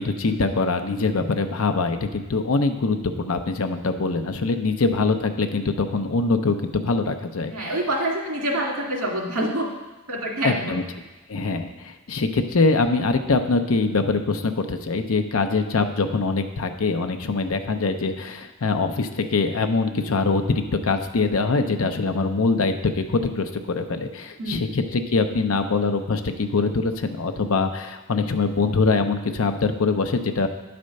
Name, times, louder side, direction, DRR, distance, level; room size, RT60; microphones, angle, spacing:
voice 1, 0.0-7.7 10.4-10.8 11.3-30.5, left 3 dB, 75° left, 7 dB, 0.7 m, -23 dB
voice 2, 7.5-9.7 10.1-10.8 24.4-24.7, right 1 dB, 80° right, -1 dB, 2.0 m, -26 dB
9.6 x 4.3 x 6.5 m, 1.2 s
head